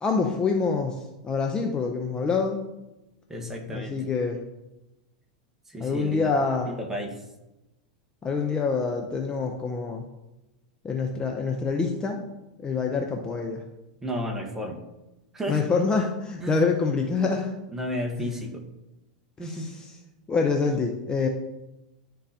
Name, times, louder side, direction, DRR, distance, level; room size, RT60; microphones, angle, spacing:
voice 1, 0.0-2.6 3.7-4.4 5.8-6.7 8.2-10.0 10.8-12.2 12.6-13.6 15.5-17.5 18.2-18.3 19.4-19.7 20.3-21.3, left 4 dB, 20° left, 2 dB, 0.7 m, -26 dB
voice 2, 3.3-4.0 5.6-7.3 14.0-14.8 15.3-15.7 16.4-16.6 17.7-18.6 19.4-19.7, equal, 10° right, 3 dB, 1.2 m, -33 dB
11.0 x 3.8 x 2.8 m, 0.99 s
hypercardioid pair, 115°, 4 cm